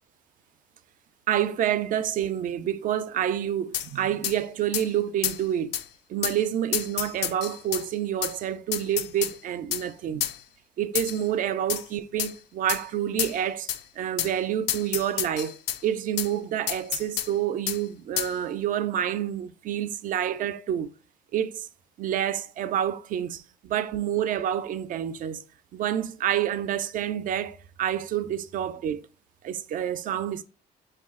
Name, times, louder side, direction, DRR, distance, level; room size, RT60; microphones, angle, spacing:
voice 1, 1.3-5.7 6.1-10.2 10.8-13.7 14.0-15.6 15.8-20.9 21.3-21.7 22.0-25.4 25.7-29.0 29.4-30.4, right 10 dB, 55° right, 0.4 m, -28 dB
sound 1, 3.7-3.9 4.2-4.4 4.7-4.9 5.2-5.4 5.7-5.8 6.2-6.4 6.7-7.8 8.2-8.3 8.7-9.3 9.7-9.8 10.2-10.4 10.9-11.2 11.7-11.8 12.2-12.3 12.7-12.8 13.2-13.4 13.7-13.8 14.2-14.3 14.7-15.8 16.2-16.3 16.7-17.3 17.7-17.8 18.2-18.3, left 11 dB, 85° left, 0.4 m, -29 dB
5.5 x 2.3 x 3.5 m
cardioid pair, 110°, 17 cm